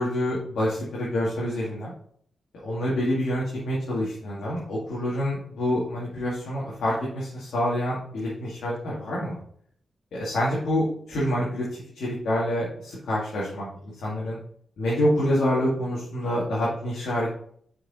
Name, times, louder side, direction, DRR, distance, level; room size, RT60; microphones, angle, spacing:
voice 1, 0.0-1.9 2.6-9.4 10.1-13.7 14.0-14.4 14.8-17.3, equal, 80° left, -6 dB, 2.1 m, -27 dB
6.8 x 4.9 x 4.2 m, 0.63 s
cardioid pair, 55°, 0 cm